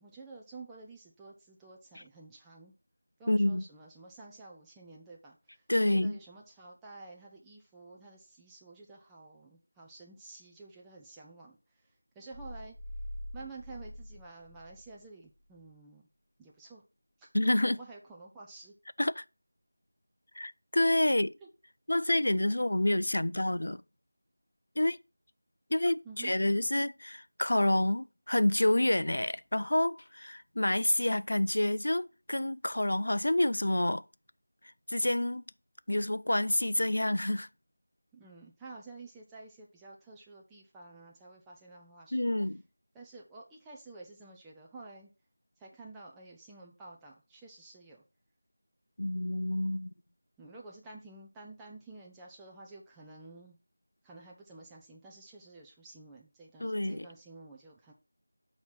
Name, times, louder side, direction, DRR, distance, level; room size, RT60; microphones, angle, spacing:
voice 1, 0.0-2.7 3.2-11.6 12.2-12.8 13.3-16.1 16.4-16.8 17.2-17.3 17.6-18.7 21.4-21.5 26.0-26.3 38.1-42.3 42.9-45.1 45.6-48.0 50.4-53.6 54.0-57.9, right 3 dB, 5° right, 0.4 m, -50 dB
voice 2, 3.3-3.6 5.7-6.2 17.3-17.8 19.0-19.2 20.4-21.3 21.9-23.8 24.8-25.0 25.7-34.0 34.9-35.4 35.9-37.5 42.1-42.6 49.0-49.9 56.6-57.1, left 1 dB, 70° left, 0.3 m, -28 dB
sound 1, 12.3-15.0, equal, 25° left, 1.2 m, -44 dB
6.2 x 2.9 x 5.7 m
figure-of-eight pair, 180°, 0 cm